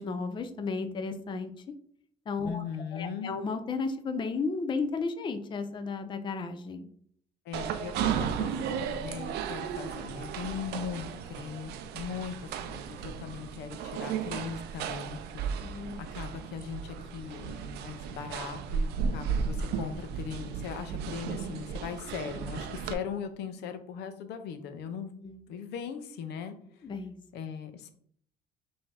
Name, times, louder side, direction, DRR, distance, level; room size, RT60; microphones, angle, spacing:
voice 1, 0.0-1.5 2.3-2.6 2.9-6.9 15.6-16.0 25.2-25.4 26.8-27.2, left 4 dB, 30° left, 8 dB, 0.4 m, -33 dB
voice 2, 2.5-3.3 7.4-25.1 25.5-26.8 27.3-27.9, left 7 dB, 80° left, 9 dB, 0.6 m, -39 dB
sound 1, 7.5-22.9, right 7 dB, 80° right, 0.5 m, -35 dB
5.4 x 2.7 x 3.3 m, 0.62 s
cardioid pair, 110°, 17 cm